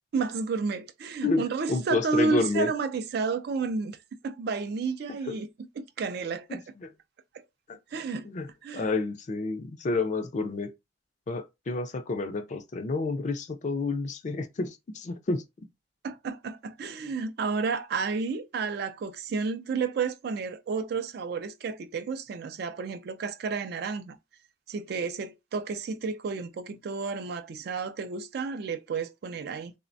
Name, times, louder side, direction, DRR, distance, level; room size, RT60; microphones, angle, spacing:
voice 1, 0.1-4.0 4.2-5.5 5.8-6.6 7.3-7.4 7.9-8.3 8.6-8.9 16.0-24.2 24.7-29.7, right 4 dB, 55° right, 0.3 m, -31 dB
voice 2, 1.2-2.7 5.3-5.4 6.5-6.9 7.7-7.8 8.2-8.5 8.7-10.7 11.3-15.4, left 3 dB, 40° left, 0.4 m, -30 dB
3.2 x 2.1 x 2.5 m
head